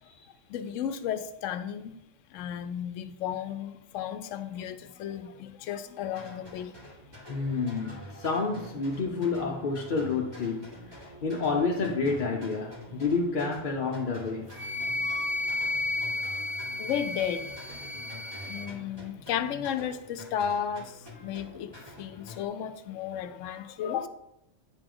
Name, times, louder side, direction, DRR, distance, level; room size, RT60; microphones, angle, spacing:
voice 1, 0.5-1.9 2.3-6.7 16.8-17.5 18.5-24.1, left 9 dB, 75° left, 0.9 m, -34 dB
sound 1, 6.1-22.4, left 1 dB, 20° right, 1.5 m, -47 dB
voice 2, 7.3-14.5, left 4 dB, 45° left, 0.8 m, -29 dB
Wind instrument woodwind instrument, 14.5-18.7, left 2 dB, 40° right, 0.4 m, -32 dB
9.4 x 4.9 x 3.8 m
omnidirectional pair, 1.3 m